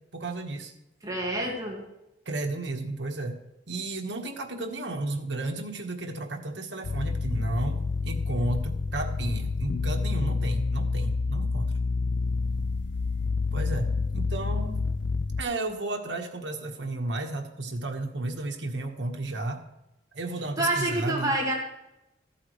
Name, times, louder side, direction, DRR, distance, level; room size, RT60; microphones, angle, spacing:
voice 1, 0.1-0.7 2.2-3.4 3.7-11.8 13.5-14.9 15.4-19.6 20.1-21.3, right 2 dB, 75° right, 3 dB, 1.4 m, -33 dB
voice 2, 1.0-1.8 20.6-21.5, right 1 dB, 20° right, -2 dB, 2.0 m, -27 dB
sound 1, 6.8-15.4, left 3 dB, 80° left, 0.5 m, -28 dB
14.5 x 8.6 x 3.2 m, 0.93 s
head